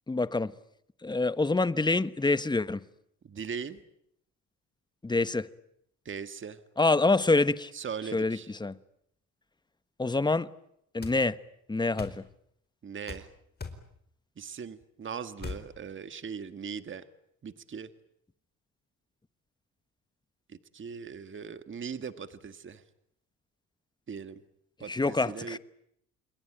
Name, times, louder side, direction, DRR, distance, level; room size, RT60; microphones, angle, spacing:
voice 1, 0.1-0.5 1.0-2.8 5.0-5.5 6.8-7.7 8.1-8.8 10.0-10.5 10.9-11.4 11.7-12.2 24.9-25.6, left 3 dB, 15° left, 1.1 m, -26 dB
voice 2, 3.2-3.8 6.1-6.6 7.7-8.5 12.8-13.3 14.4-17.0 17.4-17.9 20.5-22.8 24.1-24.4 24.8-25.6, right 6 dB, 40° right, 1.7 m, -39 dB
sound 1, 11.0-11.2 12.0-12.2 13.1-13.3 13.6-13.8 15.4-15.7, left 4 dB, 35° left, 4.6 m, -38 dB
28.5 x 22.0 x 8.9 m
cardioid pair, 90°, 30 cm